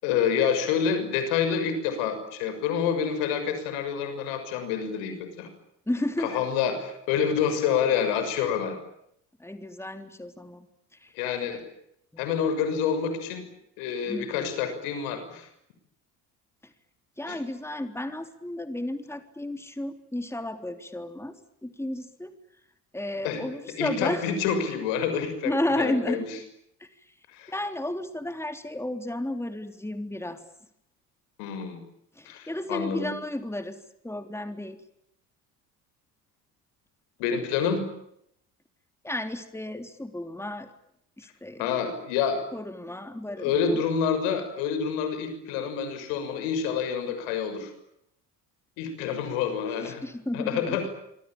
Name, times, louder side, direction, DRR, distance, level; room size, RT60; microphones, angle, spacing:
voice 1, 0.0-5.5 6.2-8.8 11.1-11.6 12.2-13.5 13.8-15.5 17.3-17.4 23.2-23.4 23.8-26.4 27.3-27.5 31.4-31.8 32.2-33.1 37.2-37.8 41.6-42.4 43.4-47.7 48.8-50.0 50.3-50.9, left 7 dB, 75° left, 9 dB, 6.7 m, -28 dB
voice 2, 5.9-6.4 9.4-10.7 11.0-11.1 12.1-12.3 14.1-14.6 17.2-21.4 21.6-22.3 22.9-24.3 25.4-26.3 26.8-26.9 27.5-30.4 32.2-33.8 34.0-34.8 39.0-40.7 41.2-41.7 42.5-43.8 49.8-50.8, left 1 dB, 5° left, 8 dB, 3.6 m, -32 dB
26.0 x 25.0 x 8.9 m, 0.76 s
hypercardioid pair, 60°, 46 cm